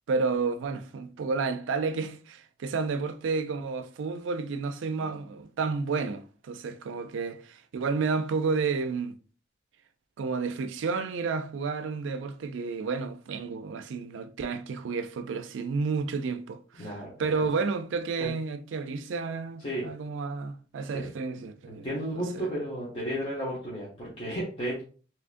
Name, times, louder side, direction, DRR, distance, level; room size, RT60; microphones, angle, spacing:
voice 1, 0.1-9.2 10.2-16.9 17.2-21.9 22.1-22.5, right 4 dB, 80° right, 0.4 m, -31 dB
voice 2, 16.8-17.3 18.2-18.3 19.6-19.9 20.9-21.1 21.8-24.8, equal, 30° left, 1.0 m, -33 dB
3.6 x 2.8 x 2.5 m
head